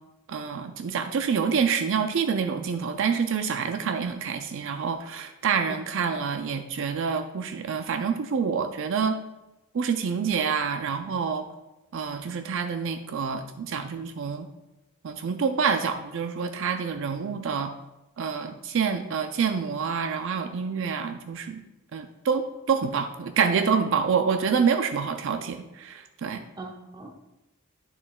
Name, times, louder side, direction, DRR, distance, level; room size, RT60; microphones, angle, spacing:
voice 1, 0.3-9.2 9.7-11.5 11.9-14.5 15.0-17.7 18.2-21.6 21.9-26.4, right 6 dB, 60° right, 8 dB, 0.4 m, -27 dB
voice 2, 5.6-6.2 26.6-27.1, right 2 dB, 20° right, 3 dB, 0.7 m, -41 dB
9.5 x 6.9 x 2.3 m, 0.99 s
head